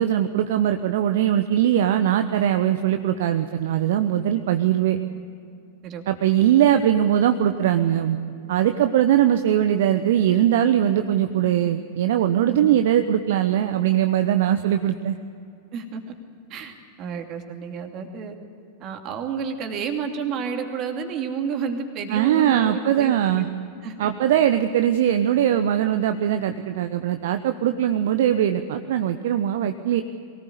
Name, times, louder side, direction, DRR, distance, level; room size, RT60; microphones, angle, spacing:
voice 1, 0.0-5.0 6.1-8.2 8.5-15.2 22.1-23.5 24.0-30.0, right 10 dB, 55° right, 8 dB, 0.8 m, -21 dB
voice 2, 12.4-12.8 15.7-16.1 16.5-18.3 18.8-23.5 23.8-24.1, right 6 dB, 35° right, 4 dB, 2.7 m, -31 dB
23.0 x 18.5 x 8.4 m, 2.5 s
figure-of-eight pair, 90°, 0 cm